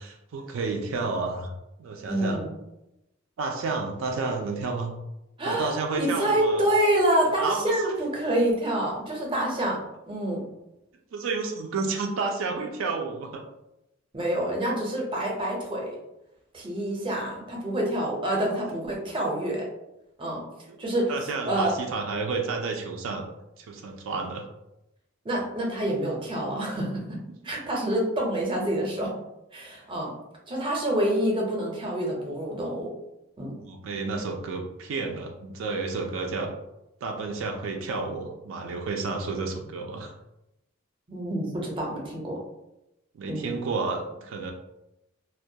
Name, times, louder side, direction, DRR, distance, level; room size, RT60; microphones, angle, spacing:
voice 1, 0.0-1.5 1.8-2.4 3.4-4.9 5.4-6.6 7.4-7.9 11.1-13.4 20.7-20.8 21.1-23.3 23.6-24.5 33.6-36.5 37.0-40.1 43.1-44.5, right 4 dB, 85° right, 2 dB, 0.4 m, -31 dB
voice 2, 2.1-2.5 5.4-10.4 14.1-16.0 16.5-19.7 20.2-20.4 20.8-21.1 21.5-21.8 25.2-27.2 27.4-29.2 29.5-30.1 30.5-32.9 33.4-33.6 41.1-42.4 43.2-43.5, right 1 dB, 25° right, -2 dB, 0.5 m, -27 dB
2.2 x 2.2 x 2.6 m, 0.90 s
head